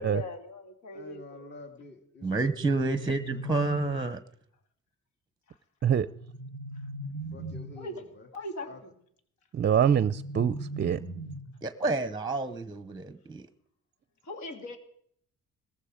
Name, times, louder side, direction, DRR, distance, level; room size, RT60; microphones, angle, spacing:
voice 1, 0.0-1.2 7.8-8.1 8.3-8.9 14.2-14.8, left 2 dB, 70° left, 5 dB, 2.9 m, -39 dB
voice 2, 0.9-3.4 7.3-8.3 8.6-8.8, left 2 dB, 35° left, 5 dB, 2.5 m, -48 dB
voice 3, 2.2-4.2 11.6-13.5, right 3 dB, 15° right, 12 dB, 0.9 m, -29 dB
sound 1, 2.3-4.3 6.0-7.9 9.7-11.7, right 1 dB, 50° left, 7.5 m, -39 dB
voice 4, 9.5-11.0, right 8 dB, 35° right, 15 dB, 0.5 m, -25 dB
18.5 x 15.0 x 5.1 m, 0.66 s
cardioid pair, 90°, 30 cm